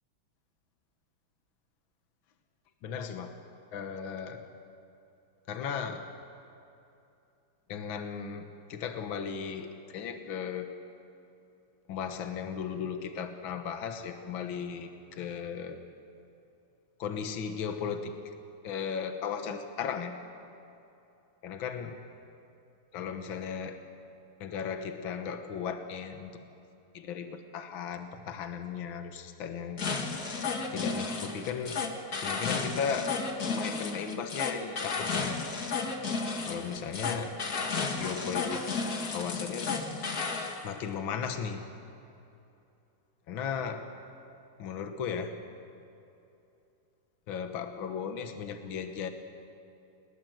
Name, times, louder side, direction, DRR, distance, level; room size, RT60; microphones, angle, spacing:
voice 1, 2.8-3.3 3.7-4.4 5.5-6.0 7.7-10.7 11.9-15.8 17.0-18.1 18.6-20.1 21.4-22.0 22.9-23.8 24.4-26.3 26.9-29.9 30.5-31.8 32.2-33.1 33.4-35.5 36.5-37.3 38.0-38.7 39.1-39.7 40.6-41.6 43.3-43.8 44.6-45.3 47.3-49.1, left 7 dB, 65° left, 6 dB, 2.0 m, -36 dB
sound 1, 29.8-40.6, left 4 dB, 45° left, 2.2 m, -33 dB
28.0 x 20.5 x 7.8 m, 2.7 s
omnidirectional pair, 2.4 m